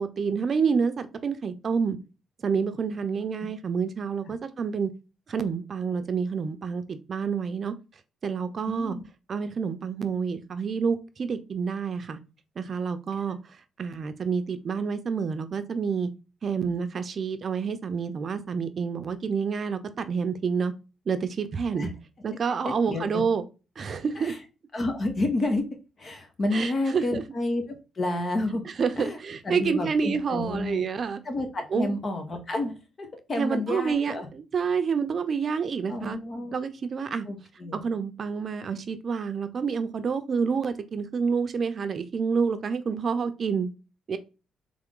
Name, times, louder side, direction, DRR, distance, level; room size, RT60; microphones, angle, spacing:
voice 1, 0.0-2.0 2.4-4.9 5.3-7.7 8.2-9.0 9.3-12.2 12.6-13.4 13.8-16.1 16.4-20.7 21.1-21.9 22.2-23.4 23.8-24.4 26.5-27.2 28.8-31.2 31.7-31.9 33.4-36.2 36.5-37.3 37.7-43.7 44.1-44.2, right 5 dB, 45° right, 0.7 m, -28 dB
voice 2, 8.7-9.0 21.8-21.9 22.6-23.2 24.2-24.4 24.7-25.7 26.0-28.6 29.0-29.2 29.4-30.8 31.2-34.3 35.9-36.6 37.3-37.8, left 2 dB, 40° left, 1.3 m, -30 dB
3.7 x 3.5 x 3.8 m
cardioid pair, 90°, 0 cm